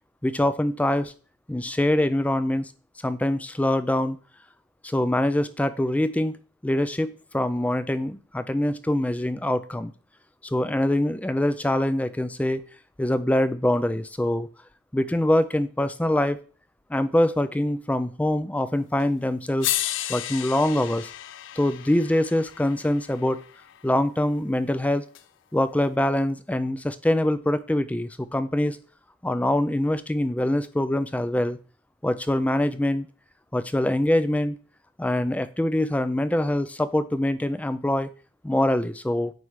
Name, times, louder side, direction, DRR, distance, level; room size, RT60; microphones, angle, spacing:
voice 1, 0.2-1.1 1.5-2.7 3.0-4.2 4.8-9.9 10.4-12.6 13.0-14.5 14.9-16.4 16.9-19.7 20.1-21.1 21.6-23.4 23.8-25.0 25.5-28.8 29.2-31.6 32.0-33.1 33.5-34.6 35.0-38.1 38.4-39.3, left 1 dB, 5° left, 12 dB, 0.3 m, -24 dB
sound 1, 19.0-19.1 19.6-23.8 25.1-25.2, left 13 dB, 75° left, 0.4 m, -33 dB
9.3 x 3.2 x 4.7 m, 0.40 s
head